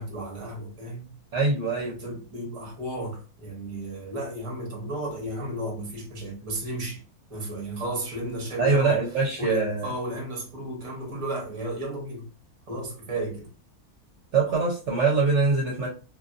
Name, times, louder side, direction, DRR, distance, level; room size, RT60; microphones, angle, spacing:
voice 1, 0.0-1.1 1.9-7.0 7.3-9.0 9.4-12.2 12.7-13.5, right 1 dB, 25° right, 0.8 m, -33 dB
voice 2, 1.3-1.9 8.6-9.9 14.3-15.9, right 4 dB, 60° right, 0.9 m, -23 dB
2.6 x 2.4 x 2.4 m
omnidirectional pair, 1.6 m